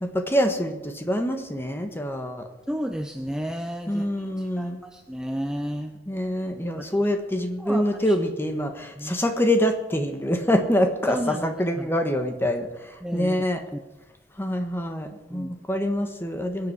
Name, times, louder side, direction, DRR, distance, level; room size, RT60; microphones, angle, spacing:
voice 1, 0.0-2.4 3.9-4.8 6.1-13.6 14.4-16.7, equal, 15° left, 6 dB, 1.3 m, -25 dB
voice 2, 2.7-4.1 4.4-5.9 6.8-7.0 7.6-8.2 8.9-9.2 11.1-11.9 13.0-13.4 13.7-13.8 15.3-15.5, equal, 5° right, 5 dB, 0.7 m, -32 dB
21.5 x 8.1 x 4.8 m, 1.1 s
head